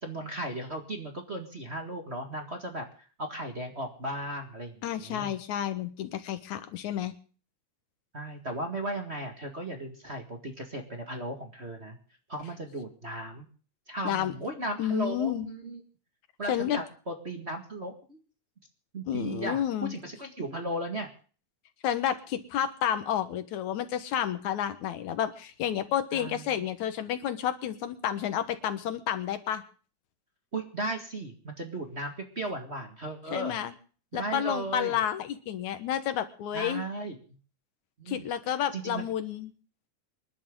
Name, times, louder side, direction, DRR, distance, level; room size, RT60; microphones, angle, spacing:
voice 1, 0.0-5.3 8.1-12.0 12.3-13.5 13.9-15.8 16.4-18.2 18.9-21.1 26.1-26.6 30.5-33.6 34.1-35.0 36.5-37.2 38.0-39.1, right 1 dB, 25° right, 2 dB, 1.7 m, -36 dB
voice 2, 4.8-7.1 14.1-14.3 14.8-15.5 16.5-16.8 19.1-19.9 21.8-29.6 33.3-33.7 34.1-36.8 38.1-39.5, left 10 dB, 80° left, 10 dB, 2.6 m, -30 dB
27.5 x 11.5 x 3.8 m, 0.40 s
omnidirectional pair, 3.3 m